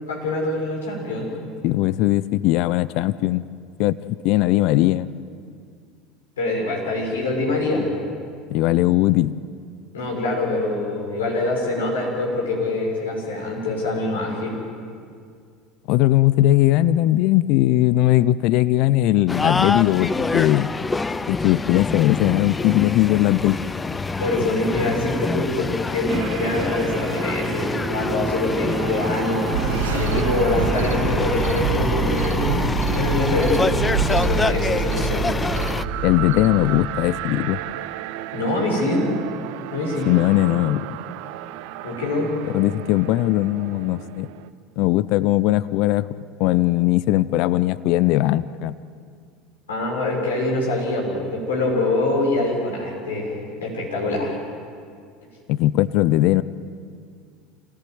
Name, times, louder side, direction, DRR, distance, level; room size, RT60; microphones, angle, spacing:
voice 1, 0.0-1.3 6.4-7.9 9.9-14.6 24.2-29.6 29.9-33.8 34.1-35.4 38.3-39.0 39.7-40.1 41.8-42.3 49.7-54.4, left 2 dB, 85° left, -2 dB, 6.4 m, -24 dB
voice 2, 1.6-3.5 3.8-4.0 4.2-5.1 8.5-9.4 15.9-20.7 21.3-23.6 36.0-37.6 40.1-40.9 42.5-44.3 44.8-46.1 46.4-48.7 55.5-56.4, left 16 dB, 60° left, 17 dB, 0.6 m, -19 dB
sound 1, 19.3-35.8, left 3 dB, 20° left, 0.8 m, -26 dB
sound 2, 26.1-44.5, right 12 dB, 65° right, 0.9 m, -34 dB
sound 3, 29.5-36.8, right 5 dB, 85° right, 1.3 m, -26 dB
26.5 x 18.0 x 9.4 m, 2.2 s
hypercardioid pair, 75°, 0 cm